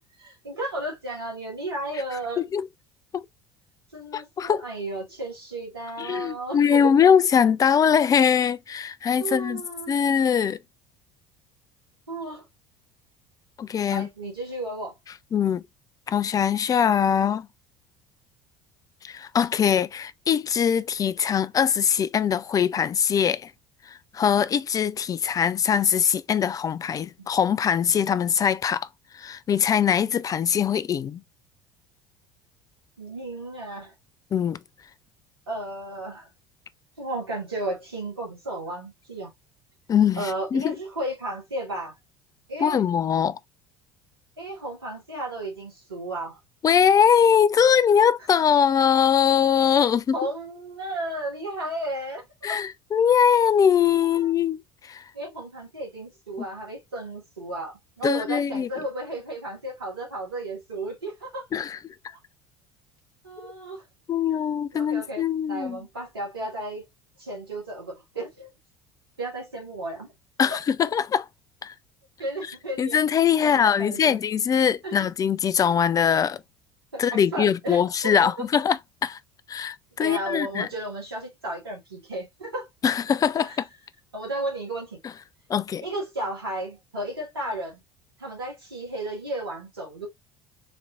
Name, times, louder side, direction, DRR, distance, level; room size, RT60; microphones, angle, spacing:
voice 1, 0.0-2.4 3.9-6.9 9.2-9.9 12.1-12.5 13.9-15.0 33.0-33.9 35.5-36.3 37.0-39.3 40.2-42.0 42.5-42.8 44.4-46.4 50.1-52.3 54.2-54.3 55.1-61.5 63.2-63.8 64.7-66.8 67.2-68.5 69.2-70.1 72.2-73.0 73.4-74.2 74.8-74.9 76.9-78.5 80.0-82.7 83.4-83.6 84.1-85.0 85.8-87.8 88.2-90.1, right 1 dB, 85° right, 1.9 m, -33 dB
voice 2, 4.1-4.6 6.0-9.6 9.9-10.6 13.6-14.1 15.3-15.6 16.1-17.5 19.0-23.5 23.9-28.9 29.1-31.2 34.3-34.6 39.9-40.8 42.6-43.4 46.6-50.2 52.4-55.0 58.0-58.7 61.5-61.8 64.1-65.8 70.4-71.3 71.6-71.7 72.8-76.4 77.0-79.2 79.5-80.7 82.8-83.7 85.5-85.8, left 8 dB, 30° left, 0.4 m, -22 dB
4.0 x 2.9 x 2.4 m
figure-of-eight pair, 65°, 12 cm